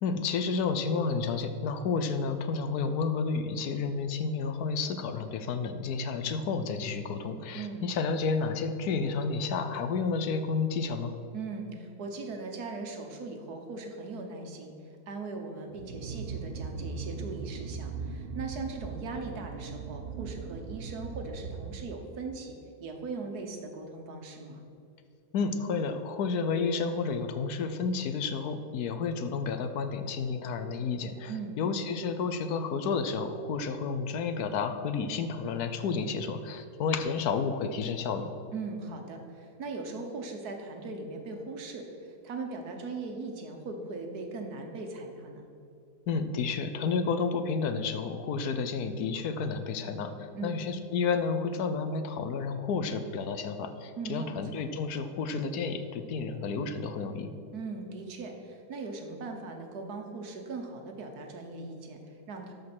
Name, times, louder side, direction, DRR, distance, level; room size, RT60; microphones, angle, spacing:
voice 1, 0.0-11.1 25.3-38.3 46.1-57.3, left 5 dB, 75° left, 9 dB, 1.2 m, -31 dB
voice 2, 7.5-7.9 11.3-14.7 15.1-24.6 31.3-31.6 38.5-45.5 50.3-50.7 54.0-54.3 54.5-54.6 57.5-62.5, right 3 dB, 70° right, 4 dB, 1.7 m, -39 dB
sound 1, 15.7-22.3, right 5 dB, 90° right, 0.5 m, -39 dB
13.0 x 5.4 x 6.1 m, 2.6 s
omnidirectional pair, 1.7 m